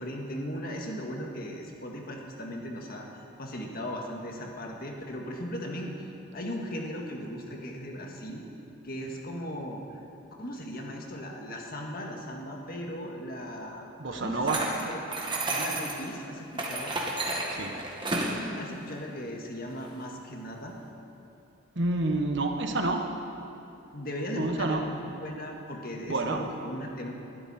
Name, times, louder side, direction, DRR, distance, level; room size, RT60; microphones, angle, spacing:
voice 1, 0.0-3.1 3.4-5.9 6.3-8.5 8.8-9.8 10.4-15.0 15.5-17.0 18.5-20.8 23.9-27.1, equal, 45° left, 1 dB, 1.8 m, -37 dB
voice 2, 14.0-14.6 17.5-17.7 21.8-23.0 24.3-24.8 26.1-26.4, right 2 dB, 55° right, 4 dB, 1.2 m, -28 dB
sound 1, 14.5-16.0 16.5-18.4, right 2 dB, 20° right, 1.7 m, -31 dB
20.0 x 12.5 x 4.3 m, 2.8 s
head